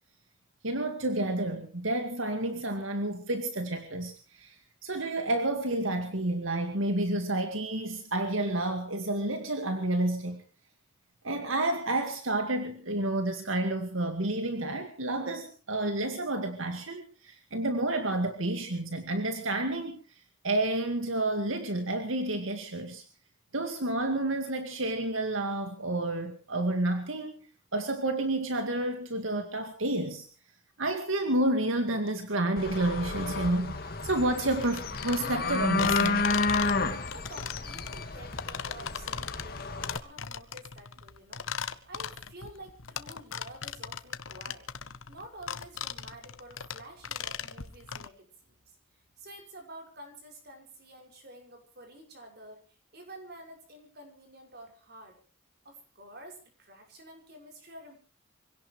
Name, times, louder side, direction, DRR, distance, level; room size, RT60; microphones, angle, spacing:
voice 1, 0.6-4.5 4.8-10.4 11.2-20.0 20.4-23.0 23.5-27.5 27.7-30.3 30.8-36.3, right 1 dB, 90° right, 6 dB, 2.1 m, -30 dB
sound 1, 32.6-40.0, left 3 dB, 50° left, 2.0 m, -31 dB
sound 2, 34.6-48.1, left 7 dB, 90° left, 1.1 m, -37 dB
voice 2, 37.1-41.4 41.9-44.7 45.1-48.8 49.2-52.6 52.9-55.2 55.6-58.0, right 1 dB, 55° right, 3 dB, 6.4 m, -49 dB
25.5 x 17.0 x 3.3 m, 0.36 s
head